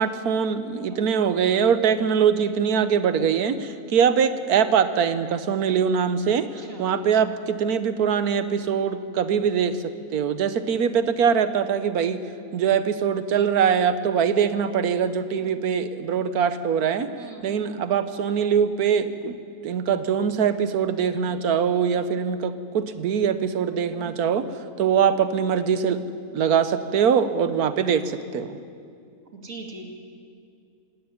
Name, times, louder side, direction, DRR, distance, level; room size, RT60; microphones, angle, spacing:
voice 1, 0.0-6.5 6.8-9.8 10.1-12.2 12.5-17.1 17.4-19.4 19.6-24.5 24.8-26.0 26.3-28.6, right 7 dB, 75° right, 12 dB, 1.4 m, -22 dB
voice 2, 17.2-17.6 23.9-24.1 29.3-29.9, right 3 dB, 60° right, 1 dB, 2.8 m, -40 dB
17.5 x 17.0 x 9.9 m, 2.3 s
omnidirectional pair, 1.6 m